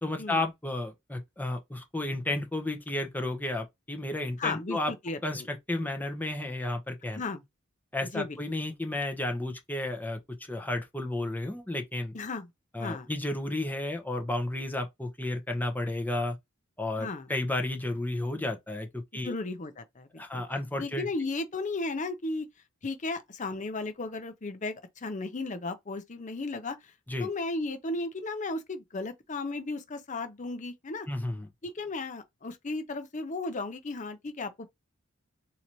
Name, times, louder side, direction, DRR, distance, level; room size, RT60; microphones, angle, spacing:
voice 1, 0.0-4.9 5.2-7.2 7.9-10.2 10.5-12.1 12.7-16.4 16.8-19.3 20.2-21.1 27.1-27.3 31.1-31.5, left 1 dB, 10° left, 0.9 m, -32 dB
voice 2, 4.4-5.5 7.1-7.4 8.1-8.4 12.1-12.5 12.8-13.1 17.0-17.3 19.2-20.4 20.8-22.5 22.8-26.9 27.2-31.1 31.6-34.7, left 3 dB, 35° left, 0.6 m, -35 dB
3.9 x 2.8 x 3.1 m
head